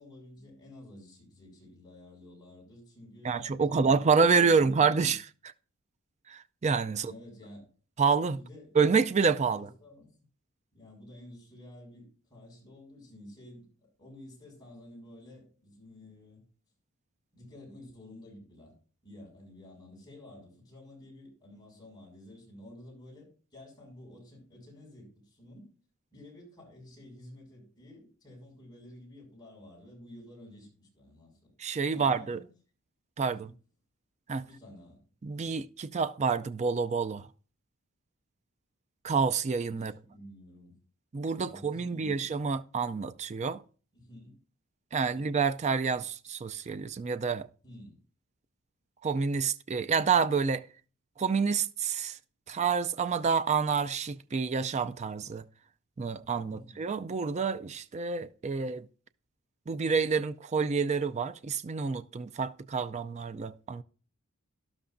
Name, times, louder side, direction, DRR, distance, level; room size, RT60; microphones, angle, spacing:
voice 1, 0.0-5.1 6.9-7.7 8.3-8.7 9.6-10.1 10.7-13.7 14.0-16.5 17.3-18.7 19.0-25.7 26.1-31.5 31.9-32.5 33.3-33.5 34.4-35.1 39.7-40.8 41.4-42.3 43.9-44.3 45.0-45.3 47.6-48.0 56.5-56.8, left 1 dB, 20° left, 6.2 m, -51 dB
voice 2, 3.2-5.2 6.3-7.1 8.0-8.4 8.8-9.7 31.6-32.4 33.2-33.5 34.3-34.4 35.2-37.3 39.0-39.9 41.1-43.6 44.9-47.5 49.0-50.6 51.2-52.2 52.5-55.4 56.0-58.9 59.7-63.8, right 5 dB, 30° right, 0.4 m, -28 dB
12.5 x 12.0 x 2.6 m
head